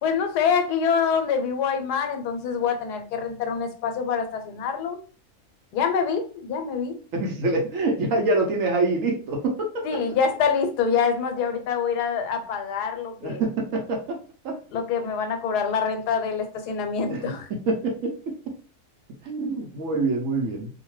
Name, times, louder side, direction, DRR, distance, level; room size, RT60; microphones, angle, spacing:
voice 1, 0.0-5.0 5.7-6.9 9.8-13.4 14.7-17.5, left 6 dB, 90° left, 6 dB, 1.2 m, -25 dB
voice 2, 7.1-9.8 13.2-14.2 14.4-14.5 17.1-17.2 17.7-18.3 19.2-20.7, right 2 dB, 65° right, 1 dB, 1.0 m, -25 dB
2.8 x 2.2 x 3.0 m, 0.39 s
omnidirectional pair, 1.7 m